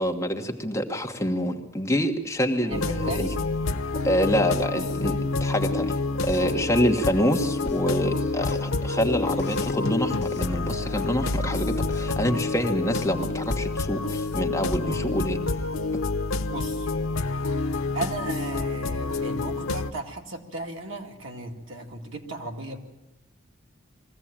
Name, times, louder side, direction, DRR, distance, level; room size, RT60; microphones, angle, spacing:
voice 1, 0.0-3.3 4.0-15.4, equal, 15° left, 2 dB, 1.3 m, -26 dB
voice 2, 2.6-3.4 6.5-6.8 16.5-16.9 17.9-22.8, right 2 dB, 65° right, 1 dB, 2.4 m, -36 dB
sound 1, 2.7-19.9, left 3 dB, 85° left, 0.7 m, -28 dB
sound 2, 6.3-16.1, left 2 dB, 55° left, 1.1 m, -40 dB
22.0 x 15.5 x 8.9 m, 0.96 s
head